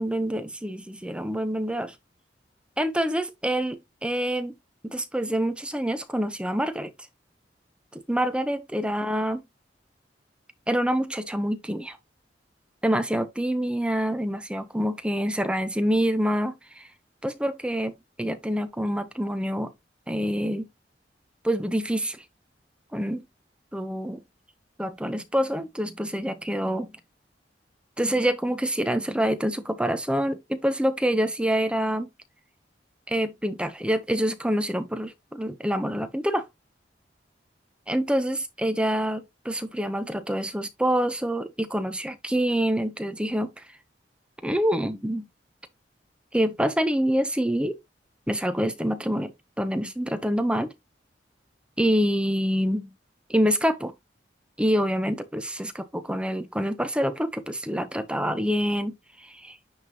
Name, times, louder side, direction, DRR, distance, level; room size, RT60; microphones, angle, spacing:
voice 1, 0.0-1.9 2.8-4.6 4.8-6.9 7.9-9.4 10.7-12.0 12.8-16.9 17.2-17.9 18.2-19.7 20.1-20.7 21.4-22.2 22.9-23.2 23.7-24.2 24.8-27.0 28.0-32.1 33.1-36.4 37.9-43.5 44.4-45.2 46.3-47.8 48.3-50.7 51.8-52.9 53.3-53.9 54.6-59.0 59.4-59.6, equal, 5° right, 0.9 m, -26 dB
9.7 x 3.7 x 2.9 m
head